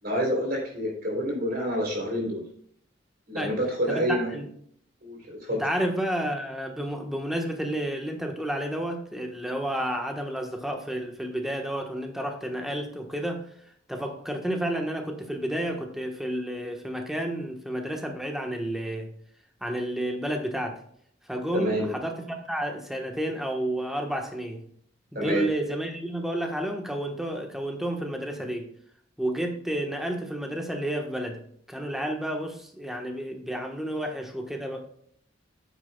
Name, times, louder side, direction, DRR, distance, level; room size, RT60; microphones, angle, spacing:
voice 1, 0.0-2.4 3.3-4.4 5.0-5.6 21.5-21.9 25.1-25.5, equal, 50° right, -1 dB, 3.2 m, -28 dB
voice 2, 3.9-4.5 5.5-13.4 13.9-19.1 19.6-20.8 21.3-24.7 25.1-28.7 29.2-31.4 31.7-34.8, right 1 dB, ahead, 3 dB, 1.1 m, -31 dB
9.5 x 8.1 x 2.2 m, 0.66 s
head